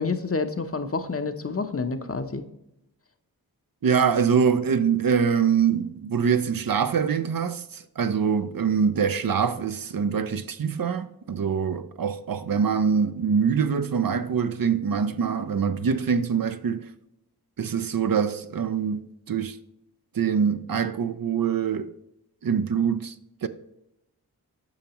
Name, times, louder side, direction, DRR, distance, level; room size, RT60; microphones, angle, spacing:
voice 1, 0.0-2.4, left 4 dB, 35° left, 0.7 m, -28 dB
voice 2, 3.8-16.9 17.6-19.6 20.1-21.9 22.4-23.1 23.4-23.5, right 6 dB, 60° right, 0.5 m, -24 dB
8.9 x 5.9 x 2.9 m
wide cardioid pair, 60°, 39 cm